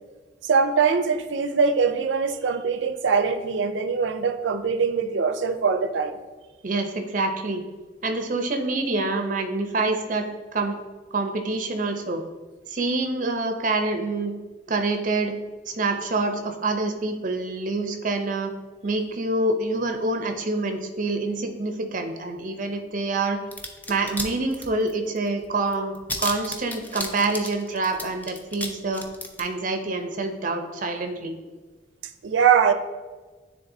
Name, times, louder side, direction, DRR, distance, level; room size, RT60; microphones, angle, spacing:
voice 1, 0.4-6.2 32.2-32.7, right 5 dB, 90° right, 0.5 m, -22 dB
voice 2, 6.6-7.6 8.0-10.3 10.5-10.8 11.1-12.2 12.7-14.3 14.7-15.4 15.7-18.5 18.8-23.4 23.9-29.0 29.4-31.3, right 2 dB, 45° right, 0.6 m, -26 dB
sound 1, 23.5-24.3 24.5-25.2 25.4-25.5 25.7-28.7 28.9-29.4, left 1 dB, 10° left, 0.5 m, -32 dB
9.6 x 3.7 x 2.7 m
head